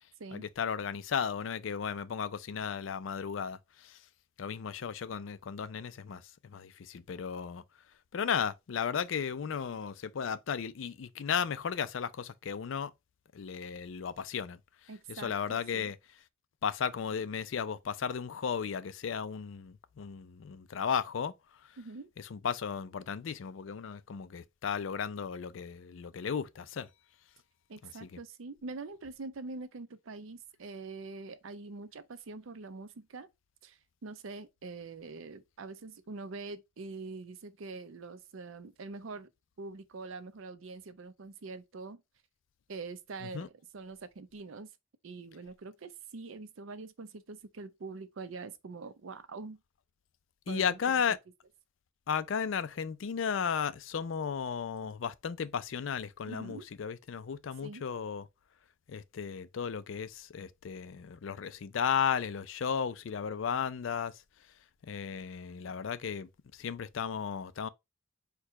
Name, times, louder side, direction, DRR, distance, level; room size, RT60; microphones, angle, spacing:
voice 1, 0.3-4.0 4.4-7.6 8.1-12.9 13.3-14.6 15.1-16.0 16.6-21.3 22.2-26.9 27.8-28.2 43.2-43.5 50.5-51.2 52.1-58.3 58.9-64.1 64.8-67.7, left 7 dB, 75° left, 0.4 m, -35 dB
voice 2, 14.9-15.9 21.8-22.1 27.7-33.3 33.6-39.3 39.6-42.0 42.7-44.7 45.0-49.6 50.5-51.2 56.3-56.7 57.6-57.8, right 3 dB, 85° right, 0.5 m, -44 dB
4.6 x 2.2 x 4.6 m
head